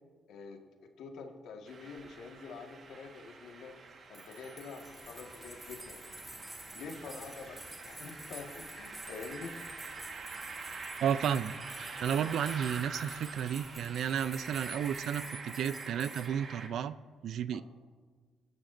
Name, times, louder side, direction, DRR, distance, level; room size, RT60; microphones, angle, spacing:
voice 1, 0.3-0.6 1.0-3.7 4.1-6.0 6.7-9.6 17.5-17.6, left 4 dB, 80° left, 2 dB, 1.7 m, -46 dB
sound 1, 1.7-16.7, right 4 dB, 55° right, 1.5 m, -46 dB
sound 2, 3.9-16.3, right 1 dB, 10° right, 1.4 m, -50 dB
sound 3, 4.8-15.4, left 3 dB, 45° left, 1.8 m, -58 dB
voice 2, 11.0-11.5 12.0-17.0 17.2-17.6, right 9 dB, 70° right, 15 dB, 0.4 m, -32 dB
26.5 x 11.5 x 2.6 m, 1.5 s
cardioid pair, 90°, 0 cm